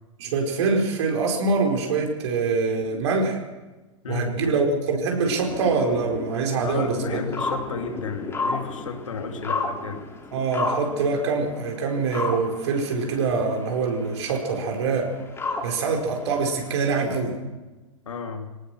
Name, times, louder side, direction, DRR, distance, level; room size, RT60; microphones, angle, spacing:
voice 1, 0.2-3.4 4.1-7.2 10.3-15.1 15.6-17.4, right 4 dB, 55° right, 2 dB, 4.9 m, -24 dB
voice 2, 4.0-4.5 6.6-10.1 18.1-18.5, left 5 dB, 70° left, 4 dB, 2.7 m, -33 dB
sound 1, 5.2-17.1, left 3 dB, 15° left, 3.1 m, -33 dB
22.5 x 18.5 x 6.4 m, 1.2 s
figure-of-eight pair, 105°, 17 cm